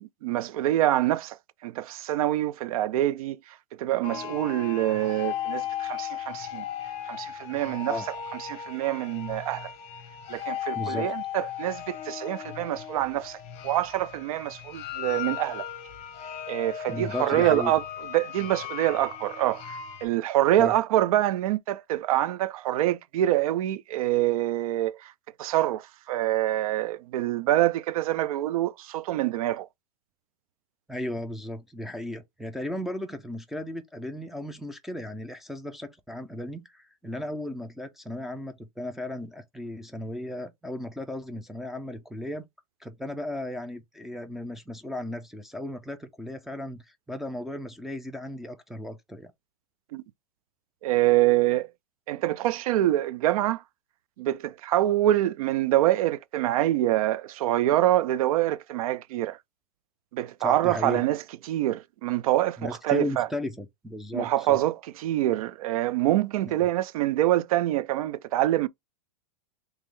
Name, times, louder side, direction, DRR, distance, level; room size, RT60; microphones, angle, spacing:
voice 1, 0.2-1.4 1.6-6.6 7.1-8.0 8.4-9.7 10.3-13.4 13.6-15.7 16.5-17.8 18.1-25.1 25.4-29.7 49.9-50.0 50.8-51.7 52.1-53.6 54.2-59.4 60.1-63.3 64.1-64.8 65.0-68.7, right 14 dB, 70° right, 0.5 m, -25 dB
sound 1, 4.0-20.0, left 10 dB, 35° left, 0.8 m, -36 dB
voice 2, 10.8-11.1 16.9-17.7 20.6-20.7 30.9-42.5 42.8-49.3 60.4-61.0 62.6-64.6 66.4-66.7, left 1 dB, ahead, 0.4 m, -35 dB
3.6 x 3.0 x 3.2 m
supercardioid pair, 150°, 19 cm